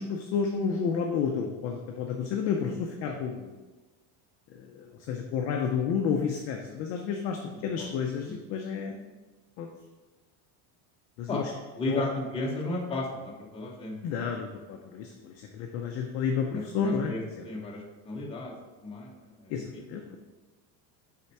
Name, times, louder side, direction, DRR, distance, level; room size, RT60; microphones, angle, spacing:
voice 1, 0.0-3.5 4.5-9.0 9.6-9.7 11.2-11.5 11.9-12.0 14.0-17.4 19.5-20.0, left 6 dB, 35° left, 2 dB, 0.4 m, -31 dB
voice 2, 11.7-14.0 16.5-18.5 18.8-20.2, left 2 dB, 15° left, -3 dB, 0.8 m, -34 dB
5.6 x 4.3 x 4.6 m, 1.2 s
cardioid pair, 170°, 44 cm